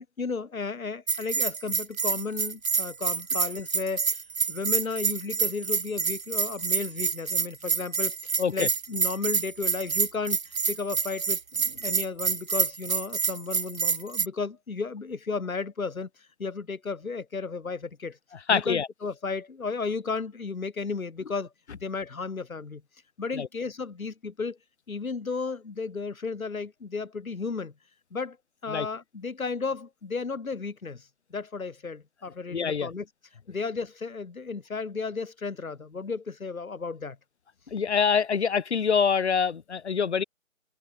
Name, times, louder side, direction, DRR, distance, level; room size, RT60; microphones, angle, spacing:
voice 1, 0.0-4.2 4.5-11.4 11.8-16.1 16.4-18.2 18.5-21.5 21.8-22.8 23.2-24.6 24.9-27.7 28.1-28.4 28.6-33.1 33.5-37.2, left 4 dB, 80° left, 2.1 m, -34 dB
Bell, 1.1-14.3, right 5 dB, 75° right, 1.4 m, -27 dB
voice 2, 18.5-18.9 23.3-23.5 28.7-28.9 32.5-32.9 37.7-40.2, left 6 dB, 55° left, 0.6 m, -25 dB
open air
figure-of-eight pair, 170°, 41 cm